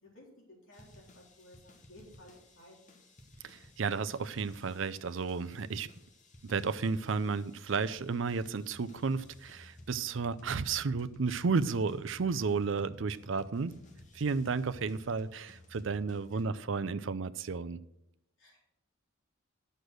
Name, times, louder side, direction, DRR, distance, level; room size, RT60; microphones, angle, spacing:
voice 1, 0.0-2.9 16.3-16.4 18.4-18.6, left 1 dB, 65° left, 3.7 m, -56 dB
sound 1, 0.7-16.4, left 1 dB, 40° left, 1.3 m, -56 dB
voice 2, 3.4-5.9 6.4-13.7 14.1-17.8, right 4 dB, 65° right, 0.5 m, -32 dB
9.7 x 6.7 x 6.2 m
head